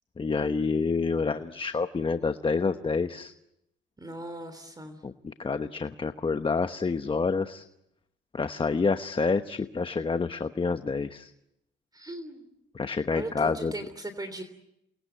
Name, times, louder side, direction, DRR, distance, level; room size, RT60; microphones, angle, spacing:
voice 1, 0.2-3.3 5.0-7.6 8.3-11.3 12.7-13.7, left 4 dB, 25° left, 9 dB, 1.1 m, -28 dB
voice 2, 4.0-5.0 11.9-12.5 13.1-14.4, right 2 dB, 20° right, 10 dB, 3.3 m, -38 dB
29.0 x 21.5 x 9.1 m, 0.84 s
cardioid pair, 90°, 20 cm